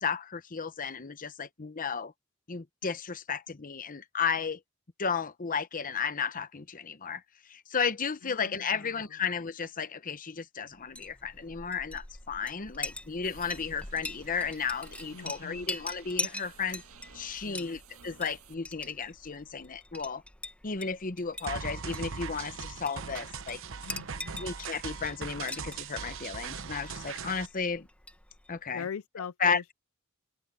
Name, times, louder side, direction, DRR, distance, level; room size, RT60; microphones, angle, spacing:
voice 1, 0.0-2.1 2.5-4.6 5.0-16.8 17.1-20.2 20.6-23.6 24.4-27.9 28.5-28.9 29.4-29.6, left 6 dB, 40° left, 0.9 m, -33 dB
voice 2, 8.2-9.1 15.1-15.7 17.4-17.8 23.8-24.4 28.7-29.7, left 6 dB, 70° left, 0.5 m, -41 dB
Chink clink, 10.8-28.6, left 2 dB, 5° left, 1.7 m, -43 dB
sound 1, 13.2-18.5, right 6 dB, 80° right, 2.1 m, -55 dB
sound 2, 21.5-27.5, right 5 dB, 65° right, 0.9 m, -39 dB
open air
head